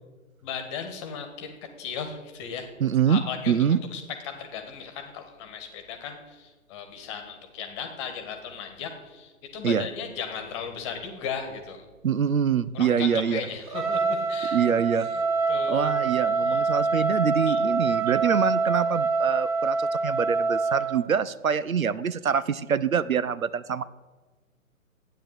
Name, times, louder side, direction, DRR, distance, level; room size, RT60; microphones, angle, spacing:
voice 1, 0.4-2.7 3.1-3.5 3.9-11.8 12.7-14.6 15.5-15.9 16.4-16.7 17.5-17.6, left 7 dB, 20° left, 6 dB, 1.5 m, -36 dB
voice 2, 2.8-3.2 3.5-3.8 9.6-9.8 12.0-13.4 14.5-15.1 15.7-23.8, right 7 dB, 70° right, 16 dB, 0.8 m, -25 dB
Trumpet, 13.7-21.0, right 4 dB, 25° right, 1.1 m, -25 dB
13.0 x 9.2 x 8.0 m, 1.3 s
figure-of-eight pair, 140°, 42 cm